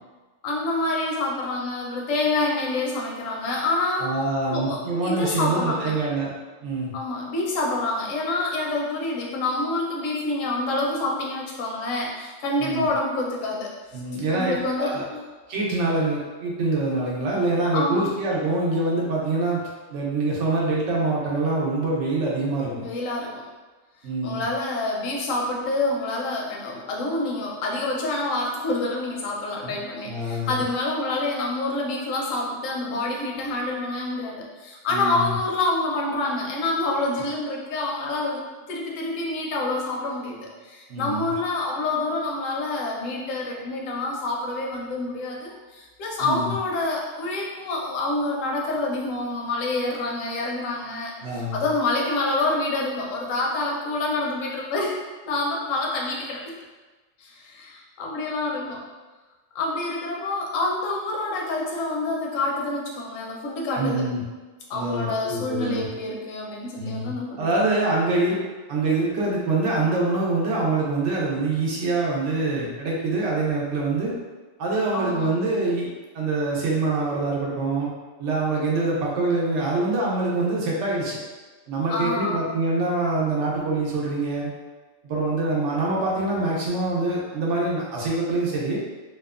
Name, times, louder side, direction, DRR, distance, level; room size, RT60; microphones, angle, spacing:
voice 1, 0.4-4.1 4.5-5.9 6.9-14.0 14.3-15.2 17.7-18.1 22.8-23.5 24.2-55.0 55.2-56.5 57.2-58.8 59.5-64.0 64.7-67.6 74.9-75.3 81.9-82.5, left 2 dB, 90° left, -1 dB, 1.0 m, -27 dB
voice 2, 4.0-6.3 6.6-6.9 12.6-12.9 13.9-15.0 15.5-19.6 19.9-22.8 24.0-24.5 29.6-29.7 30.1-30.6 34.9-35.3 40.9-41.3 46.2-46.5 51.2-51.7 63.7-64.2 64.7-65.9 66.8-67.1 67.4-68.4 68.7-74.1 74.6-75.9 76.1-77.9 78.2-81.2 81.7-84.5 85.0-88.8, right 2 dB, 75° right, -4 dB, 0.9 m, -25 dB
2.8 x 2.1 x 2.3 m, 1.3 s
omnidirectional pair, 1.3 m